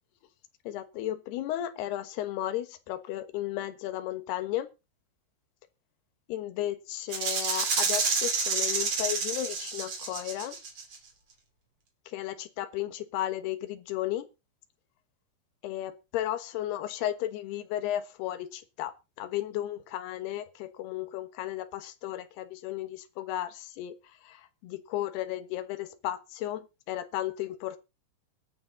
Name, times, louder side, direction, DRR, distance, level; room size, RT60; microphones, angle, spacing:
voice 1, 0.7-4.7 6.3-10.6 12.1-14.3 15.6-23.9 24.2-27.8, left 13 dB, 70° left, 2.8 m, -34 dB
Rattle (instrument), 7.1-11.0, right 5 dB, 35° right, 2.8 m, -29 dB
21.0 x 6.9 x 3.9 m
omnidirectional pair, 5.8 m